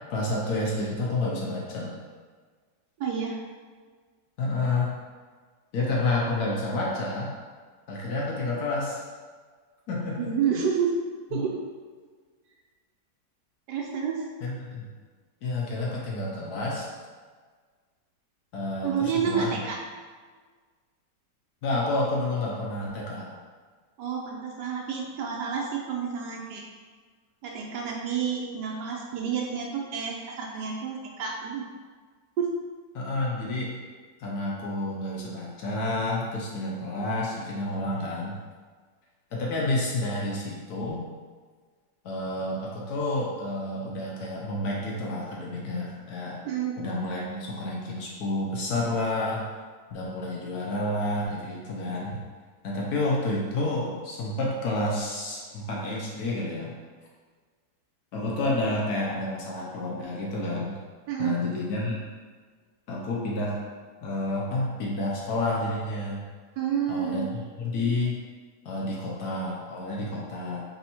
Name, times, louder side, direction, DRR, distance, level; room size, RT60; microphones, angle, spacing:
voice 1, 0.1-1.9 4.4-4.9 5.7-7.3 7.9-9.0 9.9-10.3 11.3-11.4 14.4-14.9 15.4-16.9 18.5-19.6 21.6-23.3 32.9-33.8 34.2-38.4 39.3-41.0 42.0-46.4 46.8-49.5 49.9-52.2 52.6-56.8 58.1-60.8 61.2-62.0 62.9-63.6 64.0-66.2 66.9-68.2 68.6-70.6, left 2 dB, 65° left, -3 dB, 1.1 m, -29 dB
voice 2, 3.0-3.4 10.2-10.9 11.3-11.5 13.7-14.2 18.8-19.8 24.0-26.6 27.4-31.6 32.4-32.5 46.4-46.8 61.1-61.4 66.6-67.3, right 7 dB, 75° right, -1 dB, 1.2 m, -29 dB
3.5 x 2.8 x 4.2 m, 1.5 s
omnidirectional pair, 1.9 m